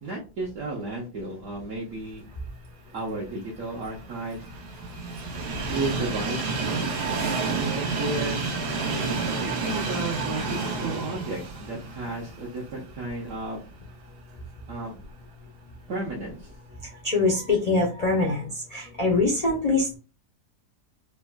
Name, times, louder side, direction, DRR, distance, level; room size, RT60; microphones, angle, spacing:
voice 1, 0.0-2.2 2.9-4.5 5.7-6.4 7.4-8.4 9.3-13.6 14.7-15.0 15.9-16.5, right 2 dB, 65° right, -5 dB, 1.1 m, -33 dB
Train, 3.3-13.4 13.8-13.9 15.0-15.1, right 4 dB, 85° right, 1.3 m, -30 dB
voice 2, 17.0-20.0, left 3 dB, 90° left, -1 dB, 0.3 m, -23 dB
3.5 x 2.0 x 2.2 m, 0.32 s
omnidirectional pair, 1.6 m